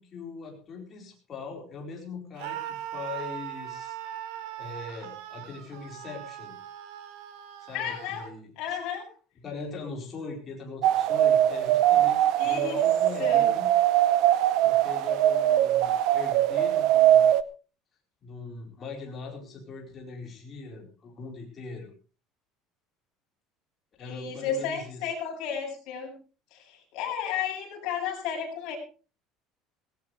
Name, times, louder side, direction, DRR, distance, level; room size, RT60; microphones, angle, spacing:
voice 1, 0.0-4.0 4.6-6.6 7.6-8.8 9.4-13.7 14.6-17.3 18.2-21.9 24.0-25.0, left 4 dB, 25° left, -1 dB, 4.5 m, -41 dB
Screaming, 2.4-8.3, right 12 dB, 90° right, 3.0 m, -40 dB
voice 2, 7.7-8.3 8.6-9.1 12.4-12.8 13.2-13.5 24.0-26.1 26.5-28.8, left 7 dB, 50° left, 0 dB, 7.7 m, -33 dB
sound 1, 10.8-17.4, right 12 dB, 55° right, 0.8 m, -22 dB
18.0 x 17.5 x 3.3 m, 0.36 s
cardioid pair, 175°, 0 cm